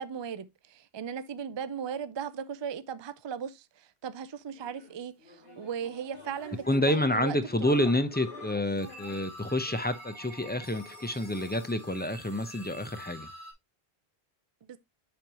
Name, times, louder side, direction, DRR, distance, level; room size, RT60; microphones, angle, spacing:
voice 1, 0.0-7.4 7.6-7.8 14.7-14.8, right 7 dB, 35° right, 0.4 m, -37 dB
sound 1, 4.5-9.8, left 2 dB, 70° left, 2.7 m, -50 dB
voice 2, 6.7-13.3, left 1 dB, 10° left, 0.5 m, -28 dB
sound 2, 7.6-8.5 8.8-13.5, left 1 dB, 40° left, 2.3 m, -46 dB
7.5 x 5.3 x 2.9 m
omnidirectional pair, 1.0 m